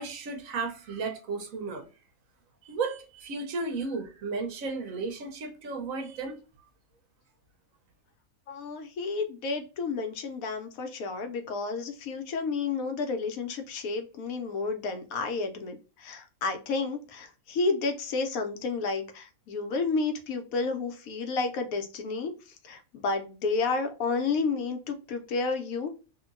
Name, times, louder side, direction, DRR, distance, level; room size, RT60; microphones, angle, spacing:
voice 1, 0.0-1.9 2.6-6.4, right 4 dB, 75° right, 1.1 m, -34 dB
voice 2, 8.5-22.3 22.6-25.9, left 4 dB, 80° left, 1.1 m, -31 dB
2.8 x 2.6 x 2.4 m
omnidirectional pair, 1.5 m